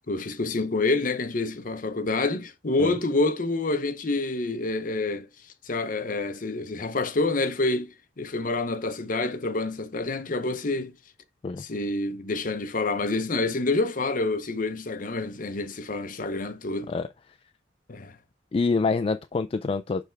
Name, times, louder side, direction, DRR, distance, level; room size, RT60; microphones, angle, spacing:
voice 1, 0.1-5.3 5.6-10.9 11.6-16.9 17.9-18.2, left 2 dB, 50° left, 0.8 m, -27 dB
voice 2, 18.5-20.0, left 4 dB, 30° left, 0.3 m, -26 dB
6.7 x 3.4 x 4.6 m
head